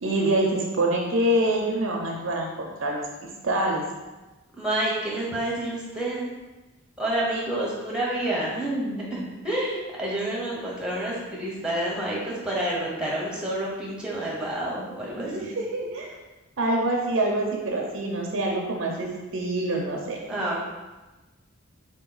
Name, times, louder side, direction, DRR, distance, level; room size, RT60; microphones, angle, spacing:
voice 1, 0.0-3.0 3.4-3.8 15.1-16.1 16.6-20.2, right 1 dB, 65° right, -1 dB, 0.6 m, -26 dB
voice 2, 4.6-6.3 7.0-15.6 20.3-20.6, right 1 dB, 5° right, -5 dB, 0.8 m, -29 dB
4.0 x 2.9 x 3.9 m, 1.1 s
head